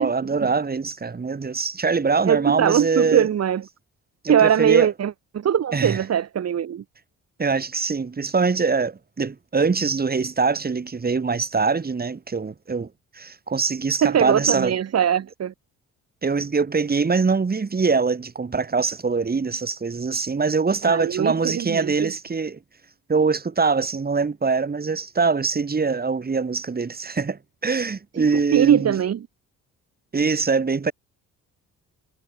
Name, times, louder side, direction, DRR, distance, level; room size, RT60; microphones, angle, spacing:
voice 1, 0.0-3.3 4.2-4.9 5.7-6.0 7.4-14.8 16.2-22.6 23.1-29.0 30.1-30.9, right 4 dB, 30° right, 4.8 m, -23 dB
voice 2, 2.3-3.6 4.3-6.8 14.0-15.5 20.8-22.1 28.5-29.3, right 9 dB, 55° right, 3.1 m, -21 dB
cardioid pair, 90°, 30 cm